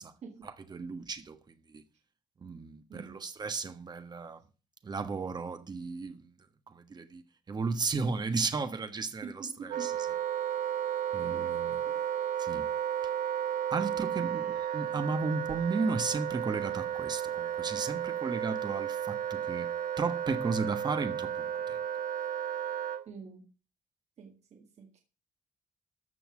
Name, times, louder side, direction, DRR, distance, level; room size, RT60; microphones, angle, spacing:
voice 1, 0.4-1.8 2.4-4.4 4.8-7.2 7.5-9.5 9.8-9.9 11.1-11.8 12.4-12.7 13.7-21.8, right 4 dB, 30° right, 1.5 m, -34 dB
voice 2, 2.9-3.2 9.2-9.9 11.3-12.0 13.9-14.3 23.1-23.5 24.2-25.0, right 5 dB, 50° right, 2.0 m, -47 dB
Wind instrument woodwind instrument, 9.7-23.0, right 9 dB, 70° right, 1.3 m, -33 dB
14.0 x 5.8 x 7.3 m
wide cardioid pair, 165°, 15 cm